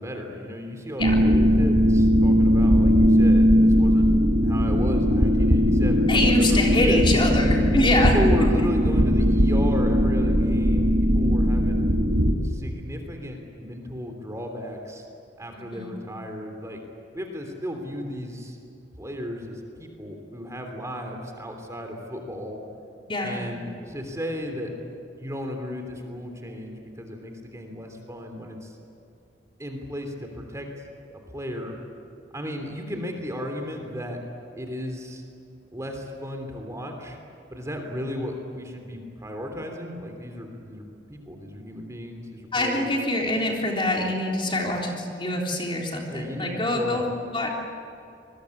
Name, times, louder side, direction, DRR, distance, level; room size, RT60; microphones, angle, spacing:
voice 1, 0.0-7.0 7.7-11.9 12.4-15.0 15.4-16.8 17.1-18.6 19.0-22.6 23.2-24.7 25.2-28.7 29.6-30.7 31.3-31.7 32.3-34.2 34.6-35.2 35.7-37.2 37.5-42.9 46.1-47.1, equal, 15° right, 3 dB, 3.1 m, -34 dB
sound 1, 1.0-12.3, equal, 75° right, 2.1 m, -19 dB
voice 2, 6.1-8.1 15.6-16.0 23.1-23.6 42.5-47.5, left 1 dB, 25° left, -1 dB, 3.6 m, -25 dB
26.5 x 22.0 x 8.5 m, 2.6 s
head